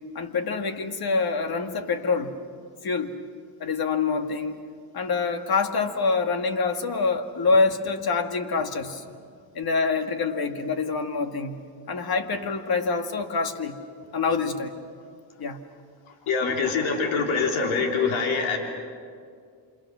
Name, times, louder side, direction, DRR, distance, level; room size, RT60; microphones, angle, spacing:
voice 1, 0.1-2.3 2.8-3.1 3.6-4.6 4.9-9.0 9.6-11.6 11.9-13.8 14.1-14.8 15.4-15.6, left 4 dB, 50° left, 7 dB, 2.2 m, -26 dB
voice 2, 16.3-18.6, left 5 dB, 80° left, 2 dB, 3.6 m, -24 dB
28.0 x 27.5 x 6.3 m, 2.2 s
cardioid pair, 85°, 47 cm